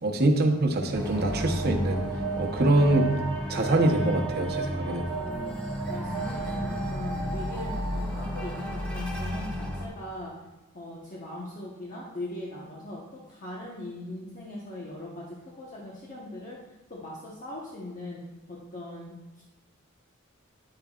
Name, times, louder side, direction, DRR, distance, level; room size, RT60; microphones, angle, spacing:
voice 1, 0.0-2.0 2.4-3.1 3.5-5.0, right 1 dB, 50° right, 3 dB, 1.0 m, -24 dB
sound 1, 0.9-9.9, right 1 dB, 5° left, 1.8 m, -32 dB
voice 2, 4.8-5.6 5.9-10.3 10.7-16.6 16.9-18.2 18.5-19.4, left 1 dB, 40° left, -5 dB, 1.2 m, -40 dB
9.8 x 9.3 x 2.4 m, 1.1 s
head